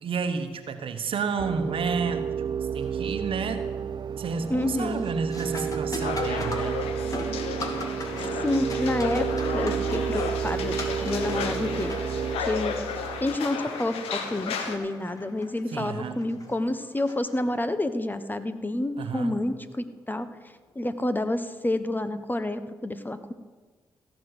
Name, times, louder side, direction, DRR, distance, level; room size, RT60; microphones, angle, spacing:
voice 1, 0.0-3.7 4.2-6.9 15.7-16.3 19.0-19.4, right 5 dB, 70° right, 8 dB, 1.2 m, -31 dB
sound 1, 1.4-13.4, right 7 dB, 50° right, 0.5 m, -31 dB
sound 2, 2.8-3.2 3.6-4.0 4.3-17.9 20.4-20.5 21.3-21.5, left 1 dB, 40° left, 2.6 m, -41 dB
voice 2, 4.5-5.1 8.4-9.3 9.5-11.9 12.5-12.7 13.2-20.3 20.7-23.3, left 1 dB, 20° left, 11 dB, 1.1 m, -29 dB
sound 3, 6.0-14.8, left 6 dB, 85° left, 1.0 m, -33 dB
16.0 x 6.3 x 8.0 m, 1.4 s
supercardioid pair, 40°, 10 cm